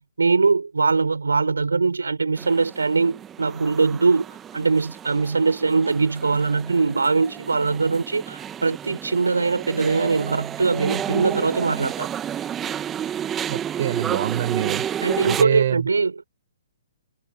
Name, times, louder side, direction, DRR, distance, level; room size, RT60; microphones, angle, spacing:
voice 1, 0.0-4.2 4.5-12.1 15.0-16.2, right 4 dB, 85° right, 6.2 m, -22 dB
sound 1, 2.4-15.4, right 9 dB, 20° right, 1.6 m, -31 dB
voice 2, 13.5-14.8 15.2-15.8, right 11 dB, 55° right, 4.2 m, -25 dB
hypercardioid pair, 130°, 0 cm